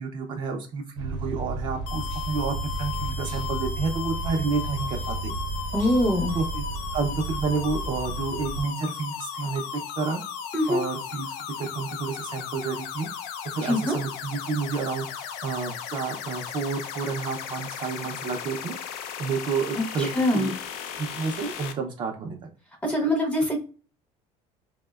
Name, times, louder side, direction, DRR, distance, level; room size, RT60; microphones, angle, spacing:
voice 1, 0.0-5.3 6.3-6.6 6.9-10.2 10.7-13.1 13.4-18.8 19.2-20.5 21.0-22.5, right 4 dB, 35° right, 3 dB, 0.5 m, -30 dB
sound 1, 1.0-8.6, right 3 dB, 80° right, 0.7 m, -33 dB
sound 2, 1.9-21.7, left 8 dB, 80° left, 0.4 m, -36 dB
voice 2, 5.7-6.4 10.5-10.8 13.6-14.0 19.8-20.5 22.8-23.6, left 1 dB, 10° left, 1 dB, 0.6 m, -24 dB
4.1 x 2.1 x 2.2 m, 0.36 s
cardioid pair, 155°, 13 cm